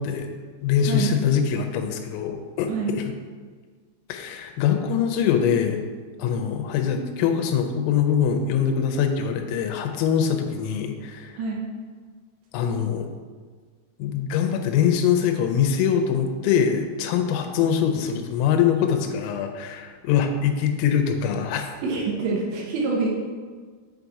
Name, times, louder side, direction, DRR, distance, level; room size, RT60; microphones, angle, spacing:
voice 1, 0.0-3.0 4.1-5.8 6.2-11.3 12.5-13.1 14.0-21.7, left 8 dB, 90° left, 5 dB, 3.3 m, -23 dB
voice 2, 21.8-23.3, right 4 dB, 75° right, -1 dB, 2.6 m, -26 dB
7.6 x 4.0 x 4.7 m, 1.5 s
omnidirectional pair, 5.8 m